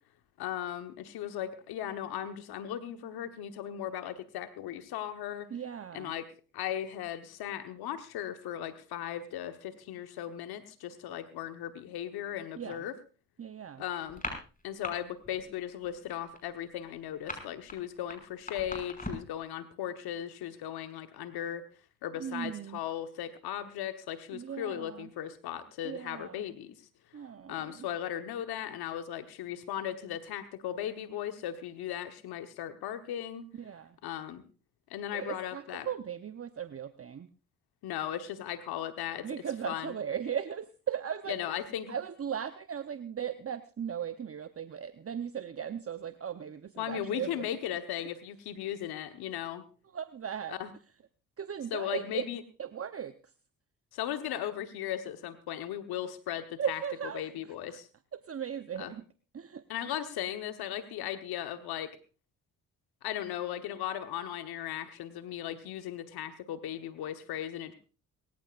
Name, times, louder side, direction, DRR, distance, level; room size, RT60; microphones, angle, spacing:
voice 1, 0.4-5.5 5.9-6.2 6.5-12.9 13.8-14.2 14.6-21.6 22.0-26.7 27.5-33.4 34.0-34.4 34.9-35.9 37.8-39.3 39.7-39.9 41.3-41.9 46.8-49.6 50.5-50.7 51.7-52.4 53.9-56.8 57.1-57.9 58.8-58.9 59.7-61.9 63.0-67.7, left 11 dB, 80° left, 9 dB, 1.2 m, -37 dB
voice 2, 5.5-6.2 12.6-12.8 13.4-13.8 22.2-22.8 24.3-25.1 25.8-26.4 27.1-27.9 33.5-34.0 35.1-37.3 39.2-41.6 41.9-47.5 49.9-50.6 51.4-52.3 52.6-53.3 56.6-57.3 57.7-57.8 58.1-59.0 59.3-59.6, right 8 dB, 35° right, 11 dB, 0.9 m, -37 dB
sound 1, 14.1-14.9 15.2-15.5 15.8-19.4, left 2 dB, 20° left, 5.9 m, -39 dB
24.0 x 14.0 x 2.5 m, 0.35 s
hypercardioid pair, 45°, 38 cm